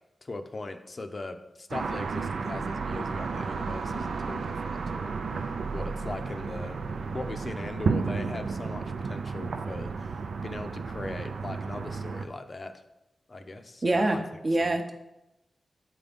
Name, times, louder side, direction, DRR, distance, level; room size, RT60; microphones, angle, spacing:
voice 1, 0.2-5.5 5.7-6.8 7.1-12.7 13.3-14.2 14.6-14.8, left 2 dB, 45° left, 6 dB, 0.5 m, -40 dB
sound 1, 1.7-12.3, right 4 dB, 90° right, 0.3 m, -32 dB
voice 2, 13.8-14.9, right 2 dB, 45° right, 5 dB, 0.7 m, -25 dB
7.7 x 3.9 x 3.5 m, 0.93 s
cardioid pair, 65°, 0 cm